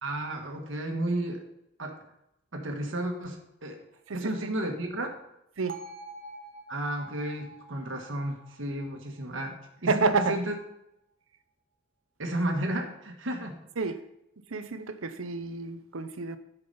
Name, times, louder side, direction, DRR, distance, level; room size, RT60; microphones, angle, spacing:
voice 1, 0.0-1.4 1.8-2.0 2.5-3.8 4.1-5.1 6.7-9.6 9.8-10.5 12.2-13.6, right 1 dB, 70° right, 2 dB, 1.4 m, -32 dB
voice 2, 4.1-4.5 5.6-5.8 9.9-10.4 13.8-14.0 14.5-16.4, right 4 dB, 90° right, 11 dB, 0.7 m, -29 dB
Bell, 5.7-9.8, right 2 dB, 45° right, 0.9 m, -47 dB
8.7 x 5.9 x 5.5 m, 0.82 s
head